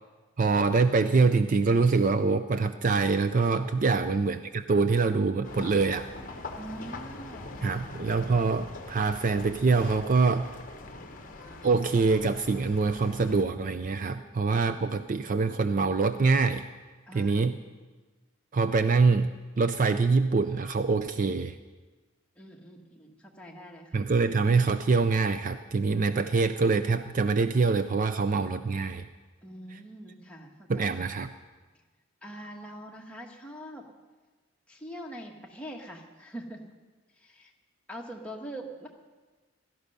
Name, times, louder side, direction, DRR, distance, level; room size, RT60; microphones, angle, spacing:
voice 1, 0.4-6.1 7.6-10.5 11.6-16.6 17.1-17.6 18.5-21.6 23.9-29.1 30.7-31.3, right 4 dB, 40° right, 10 dB, 0.4 m, -25 dB
sound 1, 5.4-13.4, left 2 dB, 40° left, 0.9 m, -43 dB
voice 2, 6.5-7.8 14.1-15.3 17.1-17.7 22.4-24.1 29.4-31.0 32.2-33.8 34.7-36.6 37.2-37.5 37.9-38.9, right 1 dB, 5° left, -1 dB, 1.3 m, -44 dB
16.5 x 12.5 x 5.4 m, 1.3 s
head